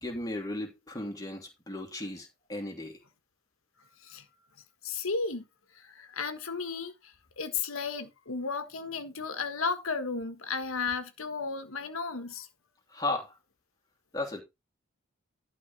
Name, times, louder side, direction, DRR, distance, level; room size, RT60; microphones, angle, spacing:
voice 1, 0.0-3.0 12.9-13.4 14.1-14.4, left 2 dB, 15° left, 2.7 m, -35 dB
voice 2, 4.8-5.4 5.7-12.5, left 4 dB, 80° left, 1.5 m, -34 dB
12.0 x 4.3 x 5.4 m
head